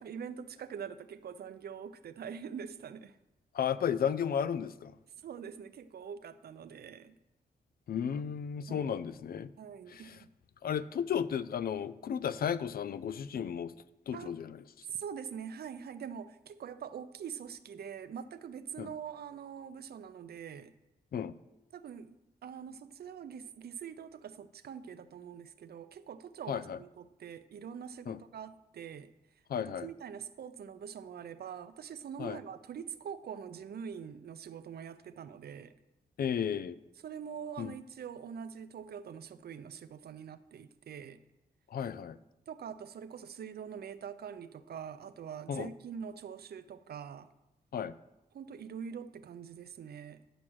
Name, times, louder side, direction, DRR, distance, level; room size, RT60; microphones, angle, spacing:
voice 1, 0.0-3.2 5.2-7.2 8.7-9.0 9.6-10.3 14.1-14.4 14.9-20.7 21.7-29.1 29.5-35.7 37.0-41.2 42.5-47.3 48.3-50.2, right 7 dB, 75° right, 0.6 m, -44 dB
voice 2, 3.5-4.9 7.9-9.5 9.9-10.2 10.6-13.7 14.1-14.6 18.8-18.9 21.1-21.3 26.5-26.8 28.1-28.2 29.5-29.9 32.2-32.4 36.2-36.8 37.6-37.7 41.7-42.2 45.5-45.7 47.7-47.9, left 8 dB, 65° left, 0.4 m, -33 dB
10.0 x 6.0 x 6.2 m
wide cardioid pair, 115°, 17 cm